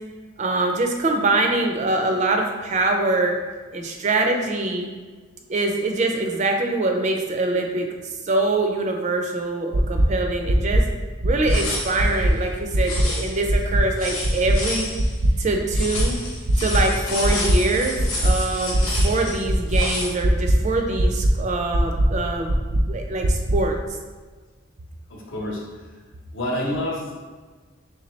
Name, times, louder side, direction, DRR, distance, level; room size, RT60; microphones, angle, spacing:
voice 1, 0.4-3.4 3.7-4.9 5.5-7.9 8.3-10.8 11.2-14.9 15.4-16.2 16.6-18.0 18.2-22.5 22.9-23.8, right 2 dB, 35° right, 3 dB, 0.4 m, -24 dB
sound 1, 9.7-10.0 10.5-10.8 11.2-11.6 12.0-12.3 12.7-13.1 13.5-13.8 14.2-14.6 15.0-15.3 15.7-16.1 16.5-16.8 17.2-17.6 18.0-18.3 18.7-19.0 19.5-19.8 20.2-20.6 21.0-21.3 21.7-22.1 22.5-22.8 23.2-23.6, right 1 dB, 85° right, 0.6 m, -19 dB
sound 2, 11.5-12.2 12.8-13.6 13.9-15.2 15.7-20.1, left 2 dB, 85° left, 1.1 m, -31 dB
voice 2, 25.1-25.6 26.3-27.2, left 1 dB, 60° left, -2 dB, 0.9 m, -28 dB
3.9 x 3.3 x 3.1 m, 1.4 s
head